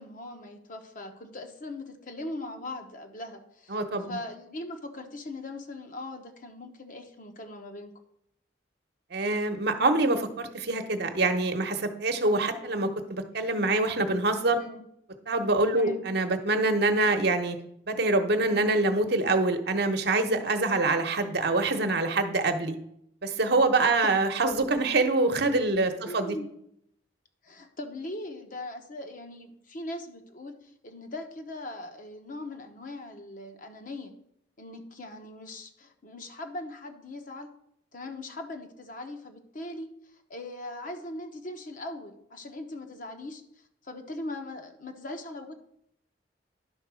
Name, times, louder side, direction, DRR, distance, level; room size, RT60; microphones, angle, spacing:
voice 1, 0.0-3.8 4.1-7.9 14.5-14.8 15.7-16.1 24.0-24.2 25.2-25.4 26.1-26.5 27.4-30.6 30.8-34.1 34.6-37.5 37.9-39.9 40.3-43.4 43.8-45.6, left 2 dB, 50° left, 5 dB, 1.0 m, -40 dB
voice 2, 3.7-4.2 9.1-14.6 15.3-17.6 17.9-22.8 23.2-26.4, right 2 dB, 60° right, 6 dB, 1.0 m, -25 dB
11.0 x 4.1 x 6.1 m, 0.73 s
head